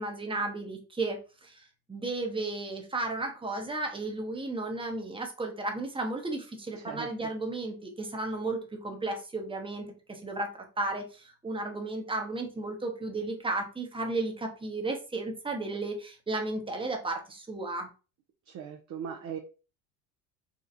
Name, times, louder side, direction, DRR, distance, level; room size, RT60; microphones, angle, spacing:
voice 1, 0.0-1.6 1.9-10.5 10.8-17.9, right 2 dB, 10° right, 3 dB, 0.9 m, -34 dB
voice 2, 6.7-7.3 18.5-19.4, right 8 dB, 35° right, 3 dB, 0.6 m, -39 dB
4.2 x 2.3 x 2.6 m, 0.34 s
hypercardioid pair, 80°, 50 cm